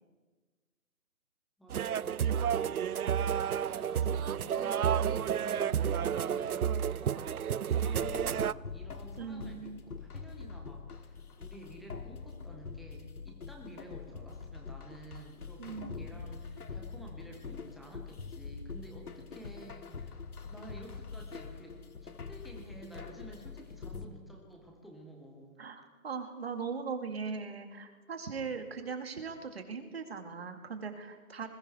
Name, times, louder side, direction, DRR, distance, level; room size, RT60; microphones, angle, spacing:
voice 1, 1.6-20.2 20.5-25.6, right 1 dB, ahead, 0 dB, 0.6 m, -51 dB
sound 1, 1.7-8.5, right 8 dB, 75° right, 0.6 m, -30 dB
sound 2, 8.0-24.1, left 5 dB, 80° left, 1.8 m, -44 dB
voice 2, 9.2-9.8 15.6-16.2 25.6-31.5, right 5 dB, 45° right, 6 dB, 2.3 m, -39 dB
28.0 x 21.0 x 4.4 m, 1.3 s
hypercardioid pair, 170°, 44 cm